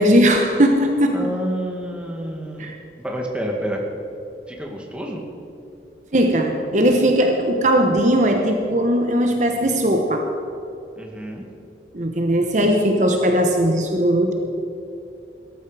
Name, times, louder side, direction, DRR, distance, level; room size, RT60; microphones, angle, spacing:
voice 1, 0.0-1.3 2.6-2.8 6.1-10.3 11.9-14.3, equal, 45° right, 3 dB, 1.2 m, -18 dB
voice 2, 1.1-2.7 3.0-3.8 4.5-5.2 11.0-11.5, equal, 5° right, 0 dB, 2.0 m, -28 dB
18.5 x 13.5 x 5.0 m, 2.9 s
head